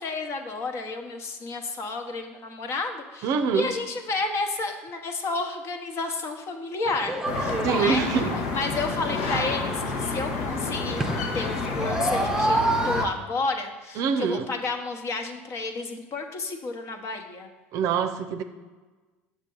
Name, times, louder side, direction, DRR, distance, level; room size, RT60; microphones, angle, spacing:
voice 1, 0.0-8.2 8.5-17.5, left 3 dB, 45° left, 5 dB, 1.0 m, -31 dB
voice 2, 3.2-3.7 7.6-8.3 14.0-14.5 17.7-18.4, right 6 dB, 55° right, 9 dB, 0.6 m, -24 dB
sound 1, 6.8-13.0, right 2 dB, 10° right, 0.7 m, -30 dB
sound 2, 7.3-13.1, left 4 dB, 65° left, 0.9 m, -30 dB
7.3 x 6.5 x 3.8 m, 1.3 s
figure-of-eight pair, 65°, 7 cm